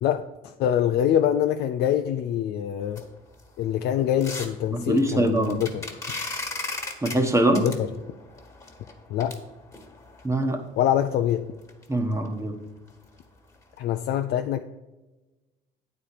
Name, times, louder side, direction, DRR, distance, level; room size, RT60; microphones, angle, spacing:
voice 1, 0.0-3.0 3.6-5.9 7.6-7.9 9.1-9.4 10.8-11.5 13.8-14.6, left 10 dB, 70° left, 6 dB, 0.5 m, -24 dB
sound 1, 2.8-10.3 10.9-11.0 11.3-11.4 11.7-11.8 12.1-12.3 12.7-12.9 13.2-13.3 13.8-13.9, left 3 dB, 20° left, 1.6 m, -37 dB
voice 2, 4.7-5.6 7.0-7.7 10.2-10.6 11.9-12.6, right 1 dB, 15° right, 6 dB, 1.2 m, -23 dB
9.1 x 4.4 x 6.8 m, 1.1 s
cardioid pair, 110°, 17 cm